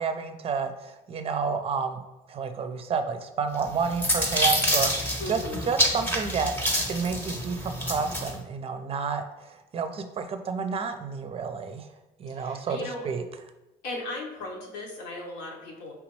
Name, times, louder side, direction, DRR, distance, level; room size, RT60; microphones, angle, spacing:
voice 1, 0.0-2.0 2.3-5.4 5.7-11.9 12.2-12.8 13.0-13.2, right 5 dB, 35° right, 9 dB, 0.5 m, -30 dB
sound 1, 3.6-8.3, equal, 10° left, 0.8 m, -27 dB
voice 2, 5.2-5.7 12.3-13.0 13.8-15.9, left 2 dB, 85° left, -1 dB, 1.1 m, -36 dB
5.0 x 3.4 x 3.1 m, 1.0 s
cardioid pair, 110°, 17 cm